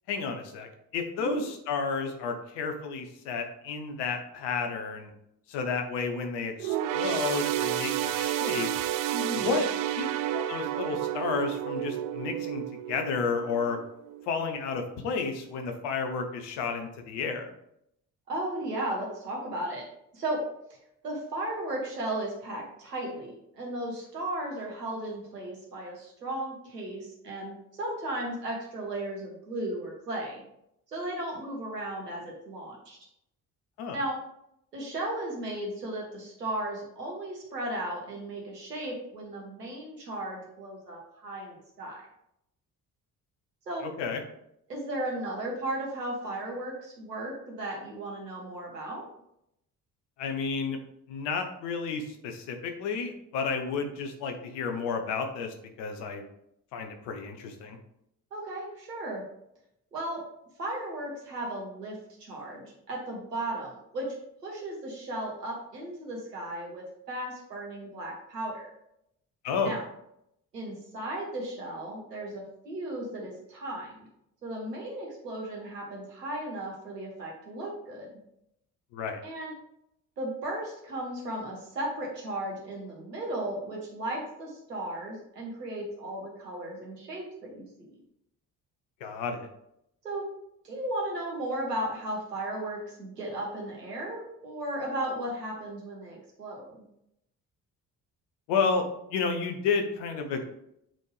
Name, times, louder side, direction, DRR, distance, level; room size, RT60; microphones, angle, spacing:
voice 1, 0.1-5.1 5.5-8.7 9.3-9.7 10.0-10.1 10.3-12.6 12.9-13.8 14.3-17.5 33.8-34.0 43.8-44.2 50.2-50.8 51.1-56.2 56.7-57.8 69.4-69.8 78.9-79.2 89.0-89.5 98.5-98.8 99.1-100.4, left 5 dB, 60° left, 5 dB, 1.1 m, -31 dB
sound 1, 6.6-14.3 14.7-14.9 15.8-15.9, right 12 dB, 45° right, 0.5 m, -31 dB
voice 2, 9.1-9.6 18.3-19.8 20.1-20.4 21.0-30.4 30.9-33.0 33.9-34.2 34.7-42.1 43.7-43.8 44.7-49.0 58.3-59.2 59.9-60.2 60.6-64.1 64.4-68.7 69.6-69.8 70.5-74.1 74.4-78.1 79.2-79.5 80.2-87.7 90.0-90.3 90.6-96.8, right 1 dB, 85° right, -2 dB, 1.4 m, -35 dB
7.7 x 4.4 x 3.4 m, 0.78 s
figure-of-eight pair, 45°, 47 cm